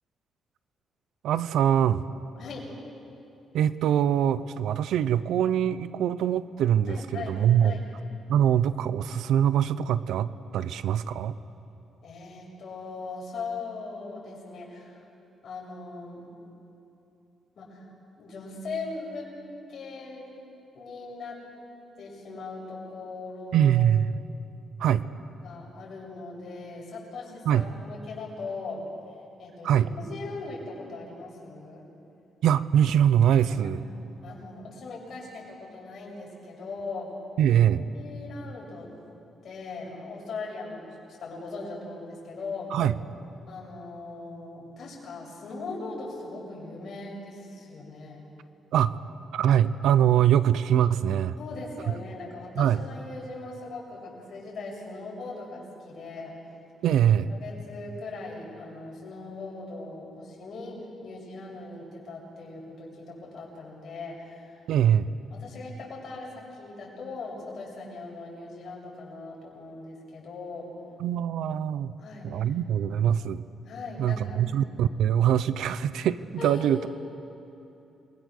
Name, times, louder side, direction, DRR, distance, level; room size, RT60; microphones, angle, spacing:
voice 1, 1.2-2.1 3.5-7.8 8.3-11.4 23.5-24.1 24.8-25.0 27.5-27.6 29.6-29.9 32.4-33.8 37.4-37.8 42.7-42.9 48.7-49.0 49.3-51.4 52.6-52.8 56.8-57.3 64.7-65.1 71.0-71.9 72.2-73.4 74.0-76.9, right 10 dB, 85° right, 15 dB, 0.7 m, -23 dB
voice 2, 2.4-2.7 6.9-7.9 12.0-15.0 15.4-16.3 17.6-17.8 18.2-19.3 19.7-20.3 20.7-21.4 22.0-23.9 25.4-28.8 29.4-31.9 33.6-33.8 34.2-37.1 37.5-37.6 37.9-38.9 39.4-42.7 43.5-48.2 51.4-56.4 57.4-64.7 65.3-70.7 72.0-72.5 73.6-74.4 76.4-76.9, left 3 dB, 55° left, -3 dB, 7.6 m, -39 dB
28.5 x 22.5 x 6.7 m, 2.9 s
cardioid pair, 125°, 0 cm